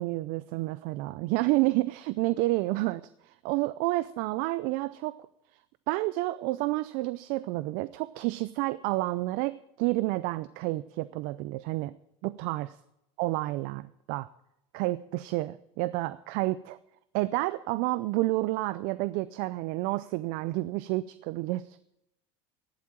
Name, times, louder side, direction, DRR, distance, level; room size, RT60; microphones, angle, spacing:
voice 1, 0.0-5.2 5.9-11.9 12.2-12.8 13.2-14.3 14.7-16.8 17.1-21.8, right 19 dB, 60° right, 17 dB, 0.5 m, -30 dB
12.5 x 10.5 x 7.3 m, 0.83 s
hypercardioid pair, 90°, 16 cm